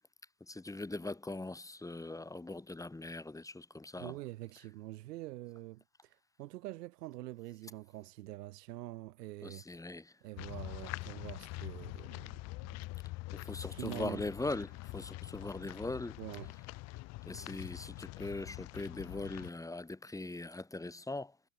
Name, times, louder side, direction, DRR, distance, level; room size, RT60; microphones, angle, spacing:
voice 1, 0.4-4.2 9.4-10.1 13.3-16.2 17.2-21.4, left 2 dB, 5° left, 1.2 m, -41 dB
voice 2, 4.0-9.6 10.2-12.8 13.7-14.2 16.2-16.5, right 16 dB, 80° right, 3.6 m, -45 dB
sound 1, 10.4-19.5, left 21 dB, 35° left, 0.4 m, -44 dB
hypercardioid pair, 90°, 47 cm